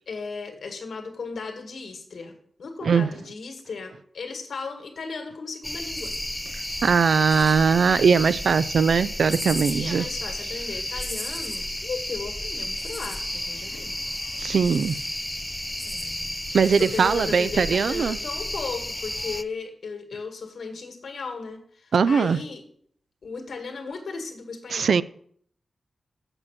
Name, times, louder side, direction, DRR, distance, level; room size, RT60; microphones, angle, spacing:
voice 1, 0.1-6.1 9.8-14.0 15.8-16.4 16.8-22.6 23.2-25.0, left 4 dB, 80° left, 2.0 m, -36 dB
sound 1, 5.6-19.4, left 1 dB, 10° left, 0.3 m, -32 dB
voice 2, 6.8-10.1 14.4-15.0 16.5-18.2 21.9-22.4 24.7-25.0, right 6 dB, 80° right, 0.3 m, -20 dB
7.8 x 6.0 x 7.4 m
wide cardioid pair, 130°, 0 cm